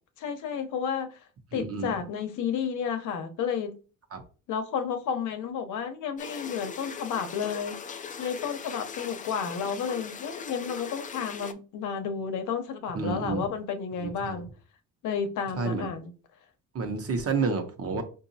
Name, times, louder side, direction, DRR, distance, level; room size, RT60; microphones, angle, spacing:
voice 1, 0.2-1.2 1.5-3.7 4.5-7.8 8.2-14.5 15.0-16.1, left 7 dB, 80° left, 0.8 m, -31 dB
voice 2, 1.5-1.9 4.1-4.2 12.9-13.5 14.0-14.4 15.6-15.9 16.7-18.0, right 4 dB, 50° right, 0.9 m, -30 dB
sound 1, 6.2-11.5, left 6 dB, 25° left, 0.4 m, -40 dB
4.8 x 2.6 x 2.7 m
cardioid pair, 90°, 30 cm